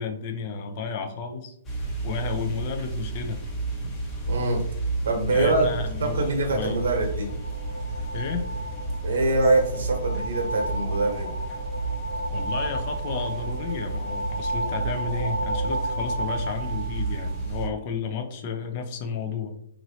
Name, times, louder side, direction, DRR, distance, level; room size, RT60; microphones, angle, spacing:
voice 1, 0.0-1.5 2.0-3.4 5.3-6.8 8.1-8.4 12.3-19.6, left 5 dB, 40° left, 5 dB, 0.5 m, -32 dB
sound 1, 1.6-17.7, right 2 dB, 15° left, 0.9 m, -32 dB
voice 2, 4.3-4.6 5.0-5.7 6.0-7.3 9.0-11.3, right 2 dB, 70° right, 2 dB, 0.9 m, -24 dB
sound 2, 6.2-17.8, right 1 dB, 80° left, 1.0 m, -34 dB
3.0 x 2.6 x 2.7 m, 0.71 s
hypercardioid pair, 130°, 0 cm